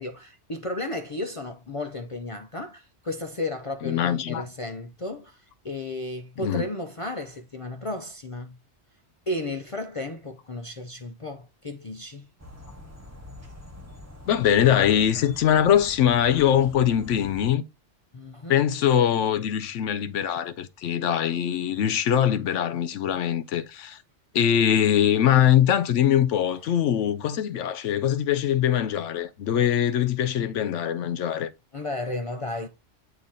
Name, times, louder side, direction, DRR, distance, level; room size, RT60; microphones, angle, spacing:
voice 1, 0.0-8.6 9.3-12.3 18.1-18.6 26.6-26.7 31.7-32.7, left 2 dB, 40° left, 0.5 m, -34 dB
voice 2, 3.8-4.5 6.4-6.7 14.3-17.6 18.5-24.0 24.3-31.5, left 10 dB, 85° left, 1.0 m, -22 dB
sound 1, 12.4-17.5, left 1 dB, 15° right, 1.1 m, -45 dB
8.7 x 2.9 x 3.9 m
omnidirectional pair, 1.2 m